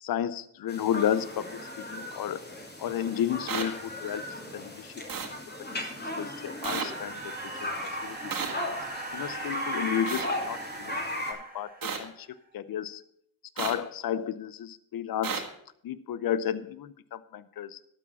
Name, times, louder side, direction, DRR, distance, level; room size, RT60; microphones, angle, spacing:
voice 1, 0.0-2.4 2.8-4.3 4.5-5.3 5.6-5.8 6.2-7.3 7.6-8.4 9.1-12.3 12.5-13.0 13.6-15.4 15.8-17.8, left 10 dB, 75° left, 17 dB, 0.7 m, -32 dB
sound 1, 0.7-11.3, left 1 dB, 25° left, 3.0 m, -37 dB
sound 2, 3.5-3.6 5.1-5.3 6.6-6.9 8.3-8.5 10.1-10.3 11.8-12.0 13.6-13.7 15.2-15.4, right 6 dB, 65° right, 1.6 m, -31 dB
sound 3, 5.9-12.3, right 3 dB, 25° right, 1.8 m, -42 dB
12.0 x 5.0 x 7.1 m, 0.70 s
cardioid pair, 55°, 36 cm